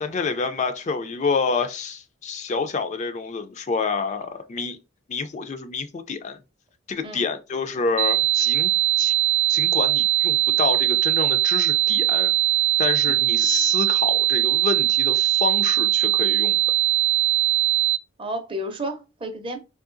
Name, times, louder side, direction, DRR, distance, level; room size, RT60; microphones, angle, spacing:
voice 1, 0.0-4.8 5.1-6.4 6.9-8.7 9.0-9.1 9.5-12.3 12.8-16.6, left 4 dB, 35° left, 0.3 m, -28 dB
sound 1, 8.0-18.0, right 15 dB, 90° right, 0.3 m, -20 dB
voice 2, 13.1-13.4 18.2-19.6, right 1 dB, 25° right, 0.5 m, -32 dB
3.7 x 2.7 x 2.5 m
head